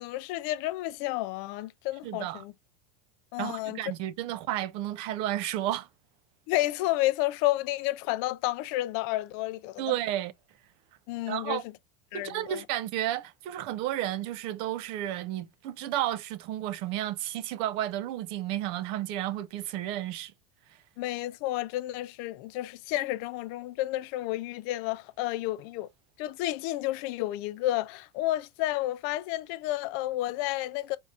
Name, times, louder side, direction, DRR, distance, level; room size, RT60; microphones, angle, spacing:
voice 1, 0.0-2.5 3.3-3.8 6.5-9.9 11.1-11.6 12.1-12.6 21.0-25.9 26.2-31.0, left 16 dB, 55° left, 0.4 m, -31 dB
voice 2, 2.0-2.4 3.4-5.9 9.8-10.3 11.3-11.6 12.1-20.3, right 13 dB, 50° right, 0.4 m, -32 dB
3.6 x 2.5 x 4.1 m
supercardioid pair, 150°, 12 cm